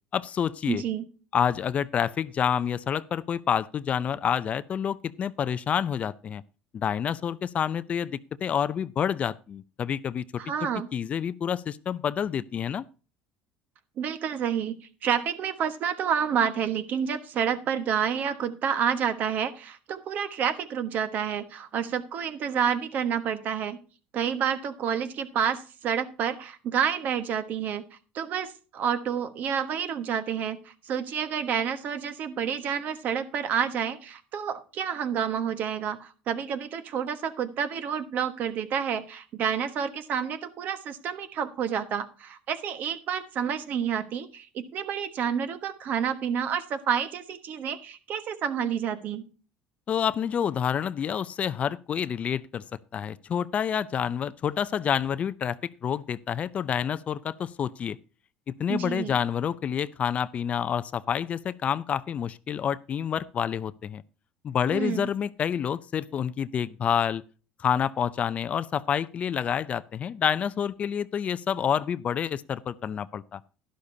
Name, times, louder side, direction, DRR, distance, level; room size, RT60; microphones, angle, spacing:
voice 1, 0.1-0.8 1.3-6.4 6.7-10.2 10.9-12.8 49.9-52.6 52.9-58.0 58.6-64.0 64.4-67.2 67.6-73.4, left 8 dB, 40° left, 0.5 m, -28 dB
voice 2, 0.7-1.1 10.4-10.9 14.0-23.8 24.1-27.8 28.1-49.3 58.7-59.2 64.7-65.1, right 8 dB, 50° right, 1.3 m, -29 dB
11.5 x 11.5 x 2.7 m
supercardioid pair, 110°, 4 cm